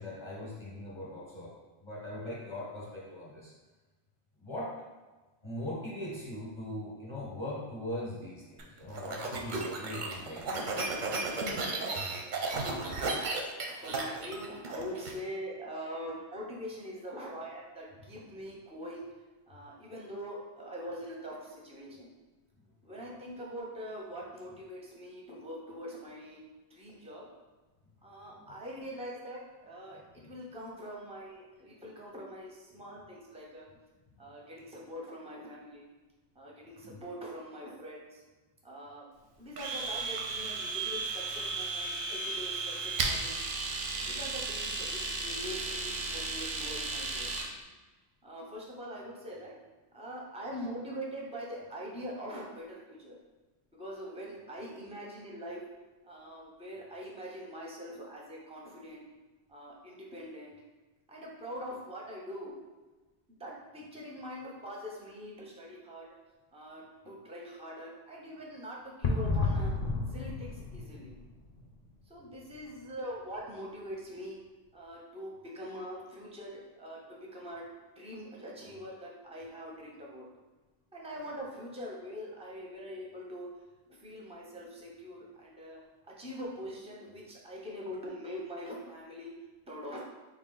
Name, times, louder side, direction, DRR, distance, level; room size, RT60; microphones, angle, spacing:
voice 1, 0.0-1.5 1.8-3.5 4.4-4.7 5.4-10.7 28.4-28.5 30.2-30.3 36.8-37.0, left 1 dB, 25° left, -6 dB, 0.8 m, -40 dB
sound 1, 8.6-15.1, right 3 dB, 55° right, 0.6 m, -34 dB
voice 2, 11.5-12.0 12.3-19.1 19.5-22.1 22.8-26.4 26.7-27.3 28.0-33.7 34.2-35.9 36.4-38.2 38.6-39.1 39.4-43.3 44.0-47.3 48.2-49.5 49.9-53.2 53.8-55.6 56.0-59.0 59.5-60.5 61.1-62.5 63.4-66.1 66.5-69.7 70.1-71.2 72.1-74.4 74.7-77.7 78.0-80.2 80.9-83.5 83.9-85.8 86.2-89.3 89.7-90.0, equal, 10° right, -3 dB, 0.4 m, -43 dB
Domestic sounds home sounds, 39.6-47.5, right 3 dB, 85° right, 0.9 m, -34 dB
sound 2, 69.0-71.7, left 3 dB, 55° left, 0.4 m, -31 dB
3.9 x 2.4 x 3.8 m, 1.2 s
omnidirectional pair, 1.2 m